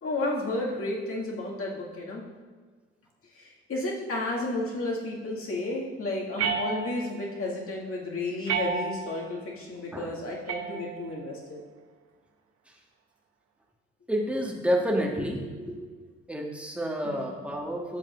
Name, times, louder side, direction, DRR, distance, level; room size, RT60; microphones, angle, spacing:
voice 1, 0.0-2.2 3.3-11.6 17.0-17.4, left 2 dB, 40° left, -3 dB, 2.2 m, -32 dB
sound 1, 6.4-7.3 8.5-9.3 10.5-11.3, right 6 dB, 50° right, 0.8 m, -31 dB
voice 2, 14.1-15.9 16.3-18.0, equal, 5° right, 0 dB, 1.5 m, -29 dB
10.5 x 7.2 x 2.6 m, 1.5 s
figure-of-eight pair, 50°, 34 cm